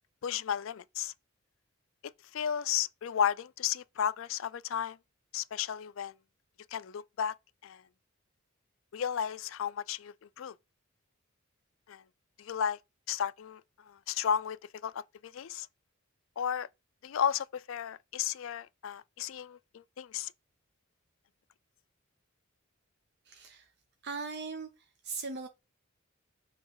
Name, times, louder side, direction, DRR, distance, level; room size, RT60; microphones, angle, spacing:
voice 1, 0.2-1.1 2.3-5.0 5.3-6.1 6.7-7.4 7.6-7.8 8.9-10.5 11.9-12.0 12.4-12.8 13.1-15.7 16.4-16.7 17.0-20.3, left 8 dB, 65° left, 0.4 m, -33 dB
voice 2, 23.3-23.7 24.0-24.7 25.0-25.5, right 4 dB, 55° right, 0.7 m, -39 dB
6.6 x 3.1 x 5.5 m
head